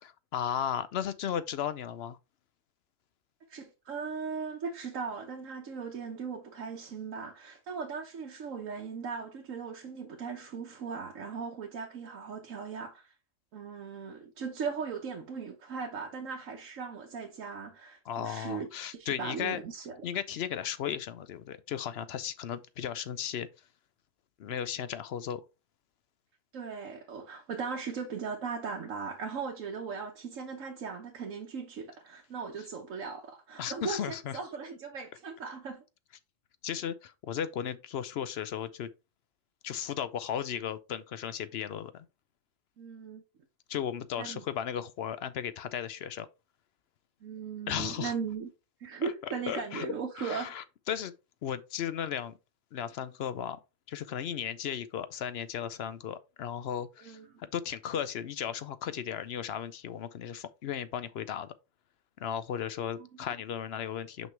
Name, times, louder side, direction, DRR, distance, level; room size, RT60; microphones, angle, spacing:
voice 1, 0.0-2.2 18.1-19.6 20.0-23.5 24.4-25.4 33.6-34.4 36.6-38.9 39.6-42.0 43.7-46.3 47.7-48.1 49.0-49.1 49.5-49.9 50.2-51.1 51.4-52.3 52.7-53.6 53.9-61.5 62.2-64.3, left 9 dB, 65° left, 0.7 m, -35 dB
voice 2, 3.5-13.1 13.5-20.0 26.5-35.8 42.8-43.2 44.2-44.4 47.2-48.5 48.8-50.5 57.0-57.4 63.0-63.1, right 5 dB, 80° right, 1.3 m, -38 dB
6.1 x 5.3 x 3.1 m
omnidirectional pair, 1.3 m